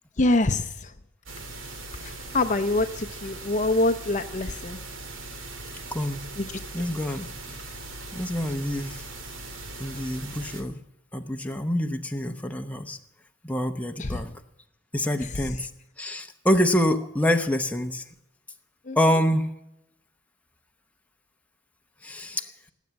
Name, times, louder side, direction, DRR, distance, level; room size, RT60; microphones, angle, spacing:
voice 1, 0.2-0.9 2.0-4.8 6.4-6.5 14.0-14.2 18.9-19.0, left 2 dB, 40° left, 8 dB, 0.7 m, -25 dB
sound 1, 1.3-10.6, right 2 dB, 85° right, 2.1 m, -40 dB
voice 2, 5.9-6.2 6.7-7.3 8.1-9.0 9.8-10.8 11.1-13.0 13.4-14.3 14.9-15.7 16.0-18.0 19.0-19.5 22.0-22.5, equal, 5° left, 4 dB, 0.9 m, -26 dB
18.5 x 8.4 x 7.5 m, 0.87 s
head